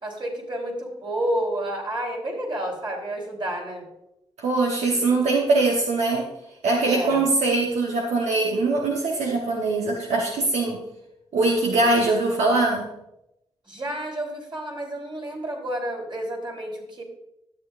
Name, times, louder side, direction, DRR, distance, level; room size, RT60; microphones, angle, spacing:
voice 1, 0.0-3.9 6.8-7.2 13.7-17.0, right 1 dB, 45° right, -1 dB, 3.5 m, -30 dB
voice 2, 4.4-6.3 6.6-10.8 11.3-12.9, right 3 dB, 85° right, 0 dB, 1.0 m, -22 dB
12.5 x 8.3 x 2.4 m, 0.83 s
supercardioid pair, 45°, 11 cm